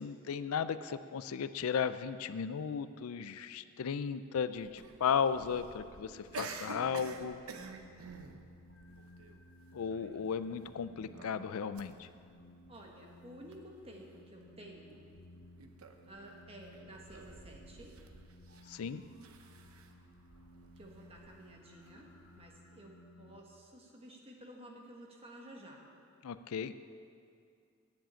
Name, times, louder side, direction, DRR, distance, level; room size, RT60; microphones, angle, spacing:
voice 1, 0.0-7.4 9.7-12.1 18.7-19.0 26.2-26.7, left 6 dB, 85° left, 13 dB, 0.4 m, -35 dB
sound 1, 4.6-22.5, right 4 dB, 80° right, 0.8 m, -52 dB
sound 2, 5.3-23.4, left 1 dB, 60° left, 0.8 m, -58 dB
voice 2, 12.7-15.0 16.0-18.0 20.7-22.1 22.4-25.8, right 1 dB, 25° right, 0 dB, 1.4 m, -53 dB
9.5 x 7.6 x 8.8 m, 2.4 s
head